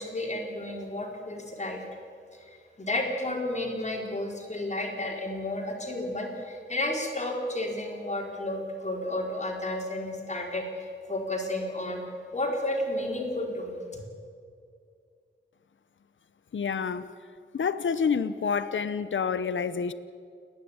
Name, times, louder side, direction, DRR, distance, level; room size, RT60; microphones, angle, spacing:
voice 1, 0.0-1.8 2.3-12.0 12.3-13.8, left 1 dB, 35° left, 0 dB, 4.2 m, -32 dB
voice 2, 16.5-17.1 17.5-19.9, left 6 dB, 80° left, 14 dB, 0.8 m, -28 dB
30.0 x 11.0 x 8.8 m, 2.3 s
wide cardioid pair, 90°, 20 cm